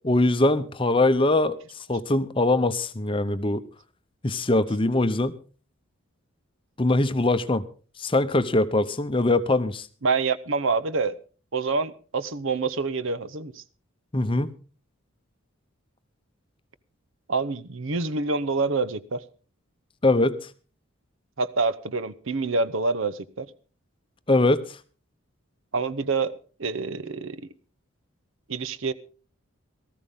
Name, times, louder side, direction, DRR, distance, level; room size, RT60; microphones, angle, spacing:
voice 1, 0.1-3.6 4.2-5.4 6.8-7.6 8.0-9.9 14.1-14.5 20.0-20.4 24.3-24.8, left 2 dB, 25° left, 12 dB, 0.7 m, -22 dB
voice 2, 10.0-11.2 11.5-13.6 17.3-19.2 21.4-23.5 25.7-27.5 28.5-28.9, right 4 dB, 65° right, 15 dB, 0.8 m, -27 dB
18.5 x 14.0 x 3.7 m, 0.38 s
head